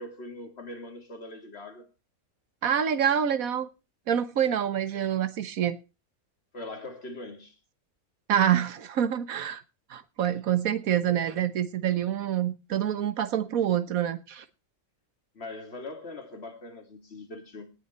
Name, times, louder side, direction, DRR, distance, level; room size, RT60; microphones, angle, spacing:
voice 1, 0.0-1.9 6.5-7.6 15.3-17.7, left 2 dB, 45° left, 2.7 m, -41 dB
voice 2, 2.6-3.7 4.1-5.8 8.3-9.6 9.9-14.4, right 9 dB, 70° right, 1.6 m, -26 dB
18.5 x 7.2 x 4.3 m
omnidirectional pair, 1.5 m